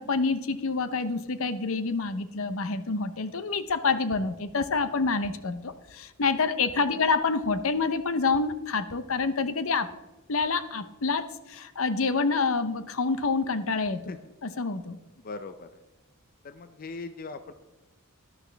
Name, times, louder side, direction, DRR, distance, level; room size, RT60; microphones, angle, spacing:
voice 1, 0.0-9.9 10.3-14.1 14.4-15.0, left 4 dB, 70° left, 12 dB, 0.8 m, -27 dB
voice 2, 15.2-15.7 16.4-17.5, left 3 dB, 40° left, 10 dB, 0.5 m, -39 dB
12.0 x 11.5 x 3.4 m, 1.1 s
head